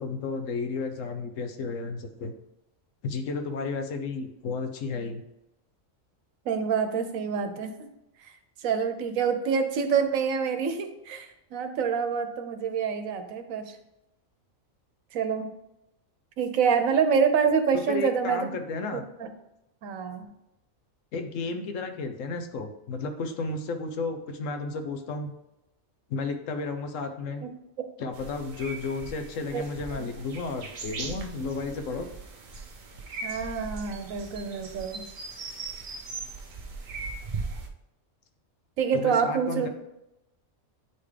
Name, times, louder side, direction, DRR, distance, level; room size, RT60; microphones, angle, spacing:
voice 1, 0.0-2.3 3.0-5.2 17.9-19.0 21.1-25.3 26.1-27.5 28.0-32.1 38.9-39.7, left 4 dB, 75° left, 6 dB, 1.1 m, -33 dB
voice 2, 6.5-7.7 8.2-8.3 8.6-13.8 15.1-15.5 16.4-18.4 18.9-19.3 19.8-20.2 27.4-27.5 29.5-29.6 29.9-30.1 33.2-35.0 38.8-39.7, right 6 dB, 90° right, 8 dB, 1.1 m, -26 dB
sound 1, 28.1-37.7, right 4 dB, 45° right, 0.6 m, -39 dB
8.8 x 3.5 x 3.3 m, 0.89 s
omnidirectional pair, 1.4 m